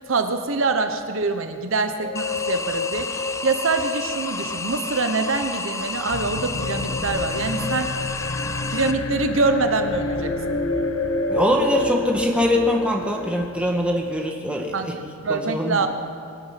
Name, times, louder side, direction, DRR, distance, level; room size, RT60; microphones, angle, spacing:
voice 1, 0.1-7.9 8.7-10.4 14.7-15.9, right 3 dB, 65° right, 7 dB, 0.9 m, -25 dB
sound 1, 2.0-13.5, left 3 dB, 55° left, 1.2 m, -30 dB
sound 2, 2.2-8.9, left 3 dB, 15° left, 0.4 m, -31 dB
sound 3, 6.1-14.2, left 2 dB, 80° left, 1.0 m, -34 dB
voice 2, 11.3-14.9 15.3-15.9, left 1 dB, 5° right, 0 dB, 1.5 m, -22 dB
23.5 x 9.3 x 5.9 m, 2.3 s
head